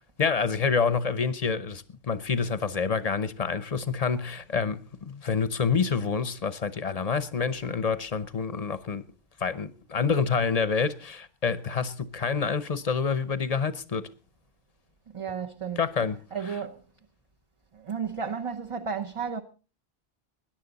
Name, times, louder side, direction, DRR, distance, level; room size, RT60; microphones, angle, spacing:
voice 1, 0.2-9.1 9.4-14.1 15.8-16.6, left 5 dB, 40° left, 0.8 m, -27 dB
voice 2, 15.1-15.8 16.3-16.8 17.7-19.4, right 6 dB, 35° right, 0.8 m, -33 dB
20.5 x 10.5 x 4.0 m
omnidirectional pair, 1.1 m